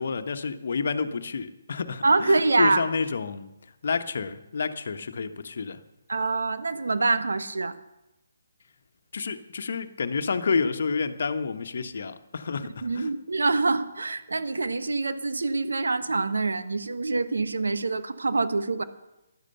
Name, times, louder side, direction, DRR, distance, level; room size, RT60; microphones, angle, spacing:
voice 1, 0.0-3.5 3.8-5.8 9.1-13.1, left 5 dB, 55° left, 10 dB, 1.2 m, -29 dB
voice 2, 2.0-2.8 6.1-7.8 12.8-18.8, right 3 dB, 70° right, 11 dB, 1.3 m, -25 dB
15.5 x 11.5 x 6.9 m, 0.93 s
figure-of-eight pair, 140°, 0 cm